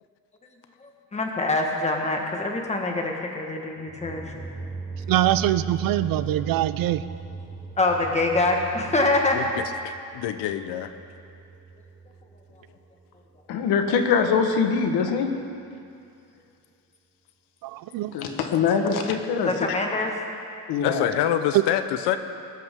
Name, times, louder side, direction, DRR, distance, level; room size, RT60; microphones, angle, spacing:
voice 1, 0.8-4.4 7.8-9.4 19.4-20.1, left 2 dB, 15° left, 1 dB, 1.5 m, -25 dB
sound 1, 3.9-12.7, right 4 dB, 10° right, 0.9 m, -38 dB
voice 2, 5.1-7.0 17.6-18.1 21.5-21.6, right 14 dB, 60° right, 14 dB, 0.5 m, -23 dB
voice 3, 9.3-10.9 20.8-22.2, left 11 dB, 90° left, 10 dB, 0.9 m, -26 dB
voice 4, 13.5-15.3 18.1-19.7 20.7-21.1, left 6 dB, 70° left, 5 dB, 1.4 m, -23 dB
21.5 x 12.5 x 3.7 m, 2.4 s
cardioid pair, 155°, 40 cm